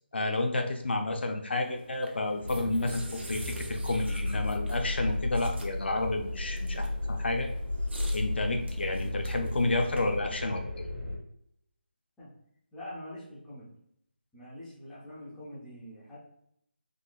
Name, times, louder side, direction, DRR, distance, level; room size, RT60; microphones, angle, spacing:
voice 1, 0.1-7.5 8.1-10.9, left 2 dB, 75° left, 4 dB, 0.6 m, -30 dB
sound 1, 1.5-10.2, right 2 dB, 80° right, 0.7 m, -48 dB
sound 2, 2.4-11.2, left 2 dB, 90° left, 1.4 m, -34 dB
voice 2, 12.7-13.7 14.3-16.2, left 1 dB, ahead, -12 dB, 0.4 m, -44 dB
3.7 x 2.2 x 2.4 m, 0.72 s
figure-of-eight pair, 175°, 6 cm